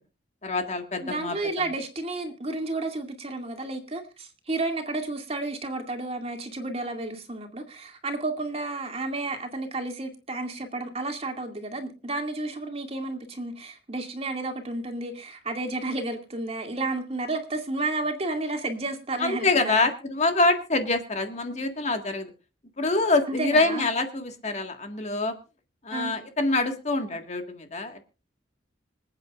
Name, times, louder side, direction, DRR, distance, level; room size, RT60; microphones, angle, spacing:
voice 1, 0.4-1.4 19.2-22.3 22.8-25.3 25.8-28.0, left 3 dB, 40° left, 5 dB, 1.8 m, -25 dB
voice 2, 1.0-19.9 23.3-23.9 25.9-26.1, right 2 dB, 35° right, 4 dB, 2.3 m, -32 dB
26.0 x 8.8 x 2.5 m, 0.31 s
head